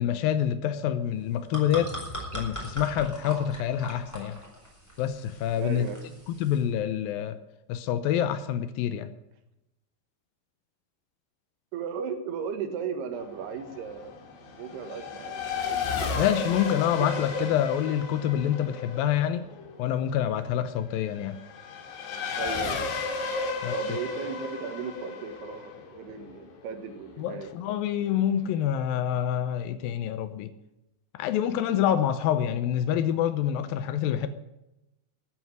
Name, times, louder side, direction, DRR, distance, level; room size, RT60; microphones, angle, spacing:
voice 1, 0.0-2.0 2.3-4.4 5.0-5.9 6.3-7.4 7.7-9.1 16.2-19.5 19.8-21.4 23.6-23.7 27.2-30.5 31.1-34.3, left 10 dB, 90° left, 2.0 m, -27 dB
sound 1, 1.2-6.6, equal, 5° left, 4.0 m, -40 dB
voice 2, 5.6-6.0 11.7-14.2 14.4-16.4 17.2-17.5 22.4-22.8 23.7-27.6, right 6 dB, 70° right, 3.4 m, -36 dB
Race car auto racing / Accelerating revving vroom, 13.1-27.2, left 5 dB, 65° left, 4.2 m, -34 dB
14.0 x 9.3 x 9.4 m
omnidirectional pair, 5.2 m